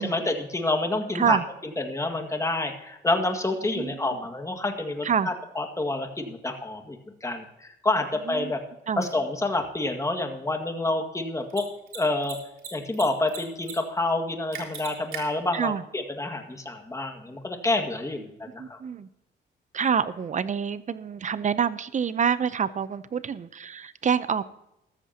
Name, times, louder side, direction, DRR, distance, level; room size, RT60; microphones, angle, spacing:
voice 1, 0.0-1.4 1.8-8.6 9.0-11.6 11.9-12.4 12.7-18.8, left 2 dB, 15° left, 5 dB, 2.0 m, -28 dB
Mechanisms, 9.0-9.1 11.4-11.6 11.9-12.0 12.2-13.0 13.3-13.7 14.0-14.1 14.5-15.2, right 8 dB, 75° right, 3.7 m, -37 dB
voice 2, 18.6-19.1 19.7-24.4, right 7 dB, 40° right, 15 dB, 0.7 m, -27 dB
14.0 x 13.5 x 2.9 m, 0.86 s
cardioid pair, 90°, 20 cm